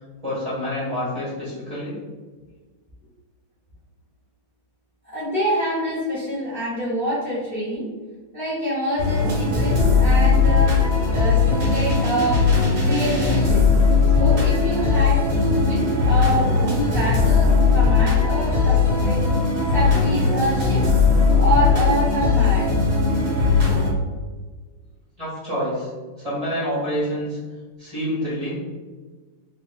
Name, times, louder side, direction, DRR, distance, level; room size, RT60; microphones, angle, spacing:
voice 1, 0.2-2.0 25.2-25.9 26.2-27.4 27.8-28.6, equal, 20° right, -10 dB, 1.1 m, -27 dB
voice 2, 5.0-7.9 8.3-12.5 12.8-13.7 14.1-19.3 19.7-20.9 21.4-22.8, right 1 dB, 90° left, -11 dB, 0.5 m, -26 dB
sound 1, 9.0-23.9, left 4 dB, 50° right, 0.8 m, -18 dB
3.5 x 3.0 x 2.2 m, 1.4 s
omnidirectional pair, 2.4 m